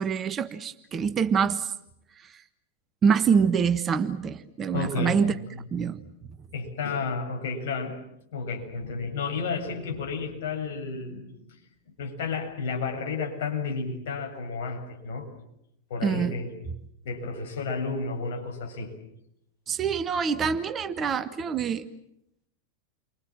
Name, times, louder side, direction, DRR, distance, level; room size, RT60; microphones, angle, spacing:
voice 1, 0.0-1.7 3.0-5.3 5.7-6.0 16.0-16.3 19.7-21.8, right 6 dB, 25° right, 11 dB, 1.4 m, -25 dB
voice 2, 4.7-5.2 6.5-8.0 8.3-11.4 12.0-15.3 15.9-16.5 17.0-18.9, left 4 dB, 55° left, 2 dB, 7.4 m, -31 dB
30.0 x 24.5 x 7.5 m, 0.78 s
figure-of-eight pair, 90°, 0 cm